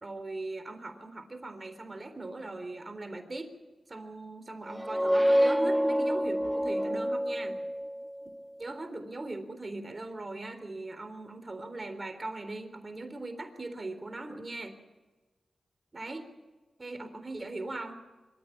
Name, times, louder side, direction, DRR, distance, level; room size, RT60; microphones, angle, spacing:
voice 1, 0.0-3.5 3.9-7.7 8.6-14.8 15.9-16.3 16.8-18.0, right 2 dB, 40° right, 9 dB, 3.7 m, -40 dB
sound 1, 4.7-8.3, equal, 5° right, 0.6 m, -27 dB
24.5 x 13.5 x 8.7 m, 1.2 s
cardioid pair, 40°, 0 cm